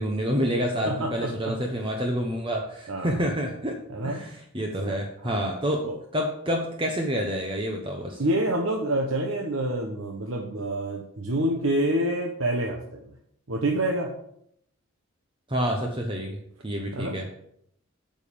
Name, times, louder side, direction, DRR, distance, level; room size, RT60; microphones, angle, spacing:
voice 1, 0.0-8.2 15.5-16.4 16.6-17.3, equal, 25° right, 1 dB, 1.0 m, -28 dB
voice 2, 0.8-1.5 2.9-3.2 3.9-4.2 4.9-5.4 5.8-5.9 8.2-13.0 13.5-14.1 16.9-17.3, right 1 dB, 75° right, 1 dB, 1.1 m, -27 dB
9.0 x 5.3 x 6.9 m, 0.72 s
head